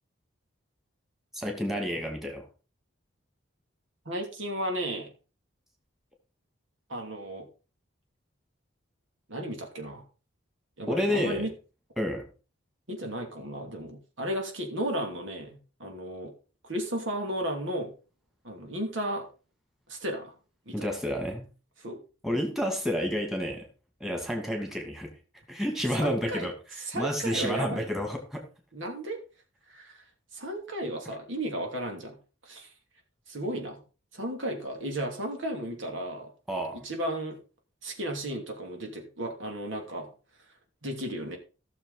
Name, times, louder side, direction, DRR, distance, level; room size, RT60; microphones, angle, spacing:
voice 1, 1.3-2.5 10.9-11.5 12.0-12.2 20.7-21.4 22.2-23.7 24.0-25.1 25.5-26.5 26.9-28.4 36.5-36.8, equal, ahead, 2 dB, 2.6 m, -30 dB
voice 2, 4.0-5.1 6.9-7.5 9.3-10.1 10.8-11.5 12.9-16.3 16.6-17.9 18.4-19.3 19.9-20.3 20.7-20.9 21.8-22.0 26.0-27.9 28.7-29.2 29.7-30.1 30.3-32.2 32.4-32.7 33.3-33.8 34.1-36.3 36.7-37.4 37.8-40.1 40.8-41.4, right 1 dB, 70° right, 3 dB, 2.9 m, -34 dB
16.5 x 6.9 x 4.1 m, 0.34 s
head